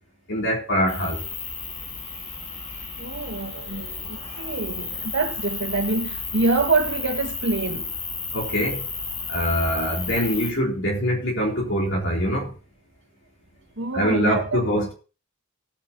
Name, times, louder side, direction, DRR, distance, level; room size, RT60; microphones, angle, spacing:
voice 1, 0.3-1.2 8.3-8.9 9.3-12.5 13.9-14.9, equal, 60° left, 3.8 m, -24 dB
sound 1, 0.9-10.5, left 4 dB, 30° left, 2.3 m, -33 dB
voice 2, 3.0-7.9 13.8-14.9, right 3 dB, 60° right, 1.8 m, -26 dB
18.0 x 9.9 x 2.9 m
head